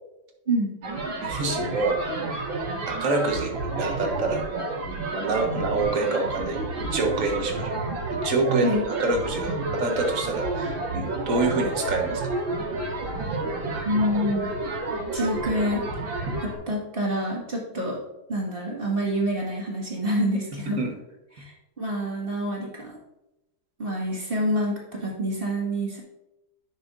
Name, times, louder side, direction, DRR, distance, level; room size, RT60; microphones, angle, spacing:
sound 1, 0.8-16.5, right 2 dB, 65° right, 2.6 m, -30 dB
voice 1, 1.2-2.5 2.8-4.4 5.1-12.3 16.3-16.4 20.8-20.9, right 3 dB, 45° right, 2 dB, 1.4 m, -27 dB
voice 2, 13.8-14.5 15.1-15.8 16.4-18.0 18.3-20.9 21.3-21.4 21.8-22.9 23.8-26.0, equal, 25° right, -4 dB, 2.0 m, -27 dB
10.5 x 6.4 x 2.6 m, 0.93 s
omnidirectional pair, 2.3 m